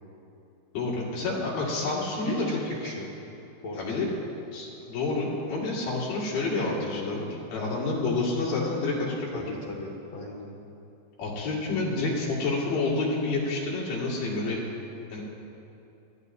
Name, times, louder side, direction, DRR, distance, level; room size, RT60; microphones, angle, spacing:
voice 1, 0.7-2.6 3.8-4.1 4.5-9.4 11.2-14.6 15.1-15.2, left 3 dB, 60° left, -5 dB, 3.7 m, -29 dB
voice 2, 2.1-3.1 3.6-4.0 9.3-10.5, left 2 dB, 85° left, -3 dB, 1.5 m, -37 dB
21.0 x 14.0 x 2.7 m, 2.8 s
omnidirectional pair, 5.0 m